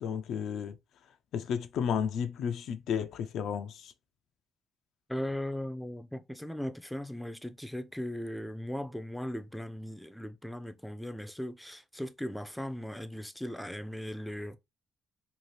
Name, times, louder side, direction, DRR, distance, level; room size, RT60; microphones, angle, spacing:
voice 1, 0.0-0.8 1.3-3.9, left 7 dB, 75° left, 0.3 m, -32 dB
voice 2, 5.1-14.6, equal, ahead, 0.4 m, -38 dB
2.7 x 2.4 x 3.1 m
cardioid pair, 90°, 0 cm